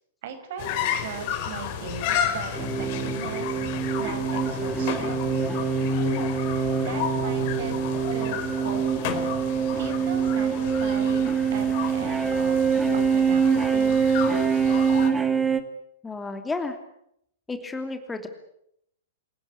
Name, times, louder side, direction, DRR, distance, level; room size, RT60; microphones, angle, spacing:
voice 1, 0.2-3.6 4.0-5.4 6.5-7.7 8.1-9.3 9.8-11.2 11.5-12.6 12.9-14.1, right 7 dB, 50° right, 8 dB, 5.5 m, -38 dB
sound 1, 0.6-15.1, left 9 dB, 45° left, 4.8 m, -33 dB
sound 2, 2.6-15.6, right 6 dB, 10° right, 2.1 m, -24 dB
voice 2, 16.0-16.8 17.5-18.3, left 3 dB, 10° left, 7 dB, 2.8 m, -32 dB
28.0 x 19.0 x 8.6 m, 0.74 s
figure-of-eight pair, 105°, 0 cm